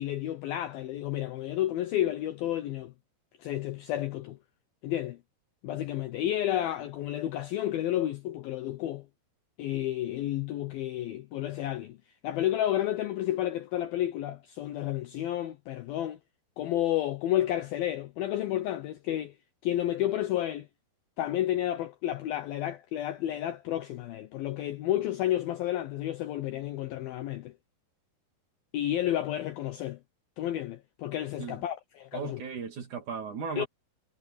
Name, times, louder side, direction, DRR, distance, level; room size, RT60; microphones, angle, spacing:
voice 1, 0.0-2.9 3.4-4.4 4.8-5.2 5.6-9.1 9.6-12.0 12.2-16.2 16.6-19.3 19.6-20.7 21.2-27.5 28.7-30.0 30.4-32.4 33.6-33.7, left 13 dB, 75° left, 2.2 m, -31 dB
voice 2, 32.1-33.7, right 5 dB, 45° right, 3.7 m, -36 dB
omnidirectional pair, 5.2 m